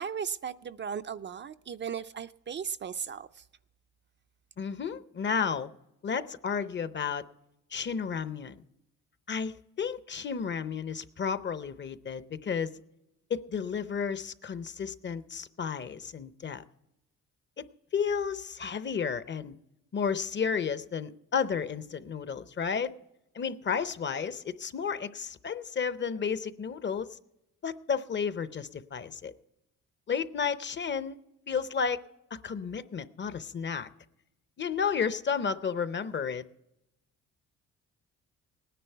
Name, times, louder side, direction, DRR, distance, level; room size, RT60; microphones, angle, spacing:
voice 1, 0.0-3.4, right 7 dB, 40° right, 11 dB, 0.4 m, -36 dB
voice 2, 4.6-5.7 6.0-7.2 7.7-8.6 9.3-12.7 13.3-16.6 17.6-17.7 17.9-19.6 19.9-22.9 23.3-27.2 27.6-29.3 30.1-31.2 31.5-32.0 32.3-33.9 34.6-36.5, left 6 dB, 40° left, 14 dB, 0.7 m, -32 dB
18.5 x 10.0 x 4.5 m, 0.88 s
cardioid pair, 90°, 30 cm